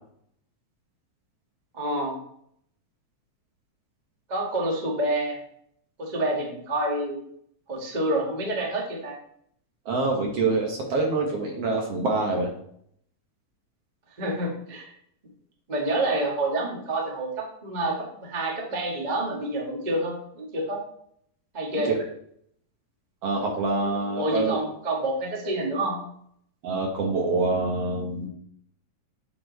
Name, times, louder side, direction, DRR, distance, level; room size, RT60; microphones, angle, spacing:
voice 1, 1.7-2.2 4.3-5.4 6.0-7.2 7.7-9.1 14.2-14.9 15.7-20.8 21.5-21.9 24.2-26.0, right 1 dB, 25° right, -2 dB, 0.9 m, -28 dB
voice 2, 9.9-12.5 21.9-22.0 23.2-24.6 26.6-28.3, right 3 dB, 60° right, 0 dB, 1.9 m, -25 dB
8.8 x 4.7 x 4.0 m, 0.68 s
omnidirectional pair, 3.7 m